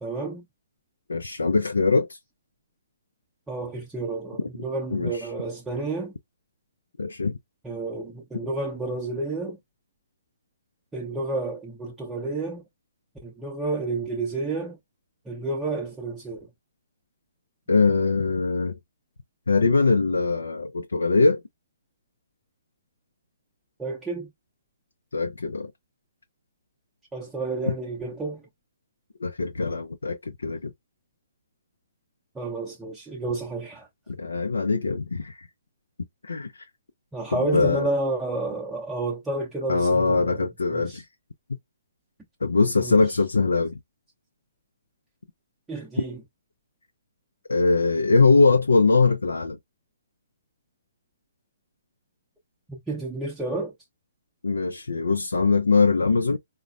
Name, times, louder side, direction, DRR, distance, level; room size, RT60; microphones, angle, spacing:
voice 1, 0.0-0.5 3.5-6.1 7.6-9.6 10.9-12.6 13.2-14.8 15.3-16.4 23.8-24.3 27.1-28.5 32.3-33.9 37.1-41.0 42.8-43.0 45.7-46.2 52.7-53.7, right 2 dB, 10° right, 0.7 m, -30 dB
voice 2, 1.1-2.2 4.9-5.3 7.0-7.4 17.7-18.8 19.5-21.4 25.1-25.7 27.7-27.8 29.2-30.7 34.1-35.5 36.2-36.7 37.3-37.9 39.7-41.1 41.5-41.6 42.4-43.8 47.5-49.6 54.4-56.4, left 4 dB, 75° left, 0.4 m, -22 dB
3.9 x 2.1 x 2.3 m
figure-of-eight pair, 130°, 0 cm